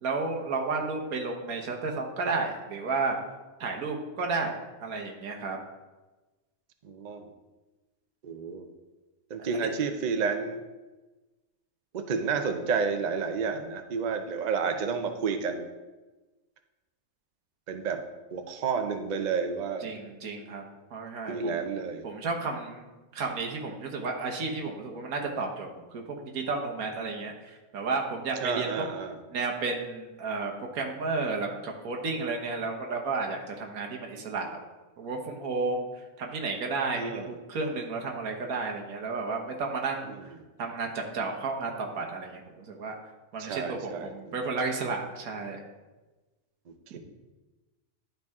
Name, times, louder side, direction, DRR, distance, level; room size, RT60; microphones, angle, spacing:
voice 1, 0.0-3.2 3.6-4.5 4.8-5.6 9.6-9.7 19.8-20.6 20.9-21.6 22.0-22.9 23.1-28.8 29.3-34.6 35.0-35.9 36.2-40.1 40.6-43.0 43.3-45.6, right 3 dB, 80° right, 1 dB, 1.5 m, -32 dB
voice 2, 6.8-7.3 8.2-8.7 9.3-10.6 11.9-15.7 17.7-18.0 18.3-19.9 21.3-22.1 28.4-29.2 37.0-37.3 40.0-40.2 43.4-44.3 46.9-47.0, right 5 dB, 55° right, 6 dB, 0.5 m, -30 dB
11.0 x 4.5 x 3.6 m, 1.2 s
omnidirectional pair, 1.5 m